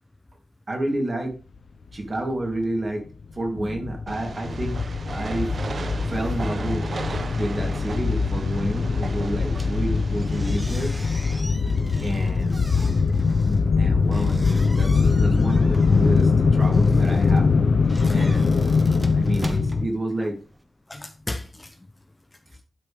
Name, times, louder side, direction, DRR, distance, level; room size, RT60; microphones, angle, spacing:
voice 1, 0.7-1.3 1.9-3.0 3.3-4.8 5.1-5.5 6.1-6.9 7.4-10.9 12.0-12.6 13.8-17.5 18.1-18.7 19.1-20.4, right 1 dB, 40° right, 3.2 m, -29 dB
sound 1, 2.5-2.6 2.9-3.0 3.2-19.9, left 4 dB, 70° left, 0.7 m, -22 dB
Train, 4.1-10.6, right 4 dB, 60° right, 0.9 m, -36 dB
sound 2, 9.5-20.6, right 1 dB, 15° right, 1.3 m, -42 dB
voice 2, 13.4-13.8 14.0-14.1 18.0-18.2 20.9-21.7, left 1 dB, 20° left, 0.8 m, -35 dB
12.0 x 6.7 x 3.6 m
wide cardioid pair, 120°, 0 cm